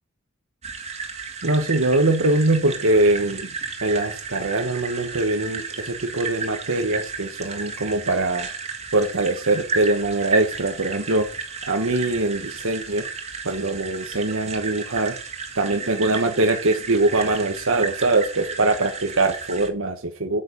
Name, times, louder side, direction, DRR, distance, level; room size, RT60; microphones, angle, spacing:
sound 1, 0.6-19.7, right 5 dB, 35° right, 1.7 m, -33 dB
voice 1, 1.4-3.5 3.8-8.5 8.9-11.3 11.7-13.0 13.4-15.1 15.5-20.4, right 2 dB, 90° right, 1.3 m, -22 dB
8.7 x 6.7 x 7.1 m
head